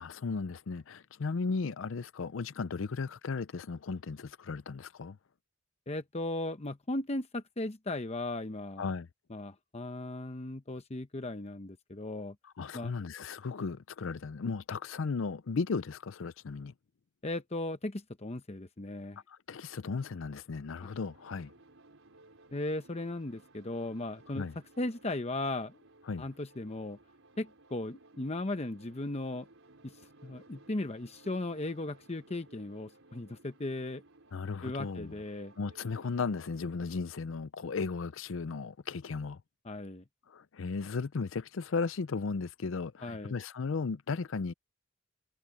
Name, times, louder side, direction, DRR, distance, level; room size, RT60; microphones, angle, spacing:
voice 1, 0.0-5.2 8.8-9.1 12.6-16.7 19.3-21.5 24.4-24.5 26.1-26.2 34.3-35.1 35.6-39.4 40.3-44.5, left 4 dB, 75° left, 0.5 m, -35 dB
voice 2, 5.9-8.9 9.3-12.4 12.7-12.9 17.2-19.2 20.8-20.9 22.5-24.5 24.8-25.8 26.2-27.0 27.4-29.5 29.8-34.0 34.6-35.5 39.6-40.0 43.0-43.4, left 2 dB, 35° left, 0.9 m, -37 dB
sound 1, 20.8-36.6, right 2 dB, 90° right, 4.0 m, -59 dB
head